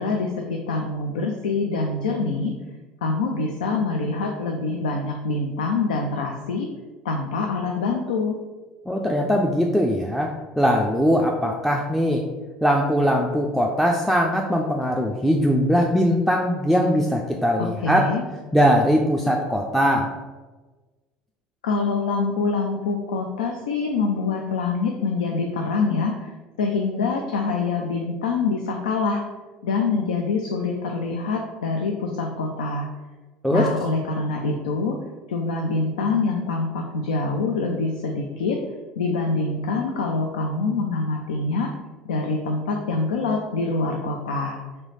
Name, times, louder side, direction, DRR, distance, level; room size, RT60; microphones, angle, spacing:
voice 1, 0.0-2.5 3.0-6.7 7.0-8.4 17.6-18.2 21.6-26.3 26.6-29.2 29.6-32.9 33.5-35.0 35.3-38.6 39.0-41.7 42.0-44.6, left 3 dB, 80° left, 2 dB, 0.4 m, -25 dB
voice 2, 8.9-12.3 12.6-18.1 18.5-20.1 33.4-33.7, equal, ahead, 0 dB, 0.4 m, -21 dB
3.2 x 3.1 x 3.9 m, 1.2 s
hypercardioid pair, 65°, 4 cm